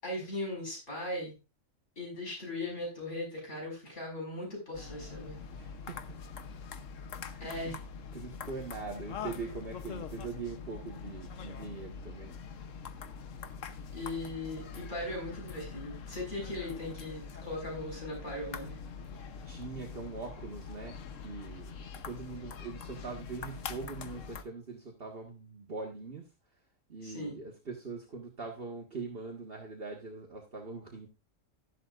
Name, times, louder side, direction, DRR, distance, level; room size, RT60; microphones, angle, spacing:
voice 1, 0.0-1.3 2.0-5.4 7.4-7.8 13.9-18.8 27.0-27.4, left 1 dB, 65° left, -1 dB, 5.8 m, -38 dB
ping-pong, 4.7-24.4, left 6 dB, 85° left, 1.3 m, -44 dB
voice 2, 5.5-6.2 7.1-7.7 8.1-12.4 19.1-26.6 26.9-31.1, right 4 dB, 50° right, 0 dB, 1.7 m, -42 dB
13.0 x 11.5 x 2.5 m, 0.27 s
omnidirectional pair, 1.3 m